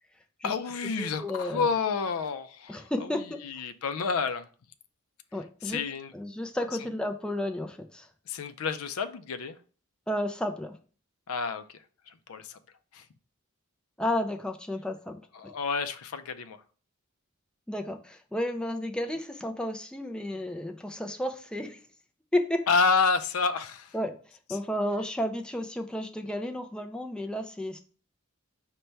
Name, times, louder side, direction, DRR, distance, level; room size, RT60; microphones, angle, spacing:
voice 1, 0.4-4.5 5.6-6.1 8.3-9.6 11.3-11.8 12.1-12.6 12.9-13.1 15.3-16.6 22.7-23.9 24.5-24.6, left 5 dB, 75° left, 0.4 m, -29 dB
voice 2, 1.0-1.7 2.7-3.4 5.3-5.8 6.1-8.1 10.1-10.8 14.0-15.2 17.7-21.8 22.3-22.7 23.9-24.1 24.5-27.8, left 1 dB, 5° left, 0.3 m, -32 dB
5.3 x 2.2 x 4.4 m
head